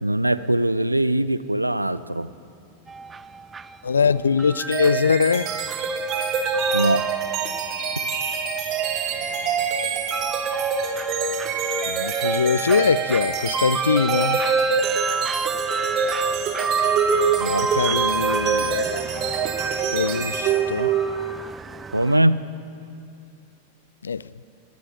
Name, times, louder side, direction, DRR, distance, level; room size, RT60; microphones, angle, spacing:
voice 1, 0.0-2.3 6.7-7.0 17.4-17.7 21.9-22.4, right 1 dB, 85° right, 0.5 m, -21 dB
sound 1, 2.9-22.2, right 4 dB, 15° right, 0.4 m, -31 dB
voice 2, 3.8-5.5 9.3-9.7 11.8-14.4 17.8-19.1 19.9-20.9 24.0-24.2, left 6 dB, 70° left, 0.3 m, -22 dB
sound 2, 4.7-21.4, right 5 dB, 35° right, 1.4 m, -25 dB
19.0 x 10.5 x 6.6 m
figure-of-eight pair, 90°, 0 cm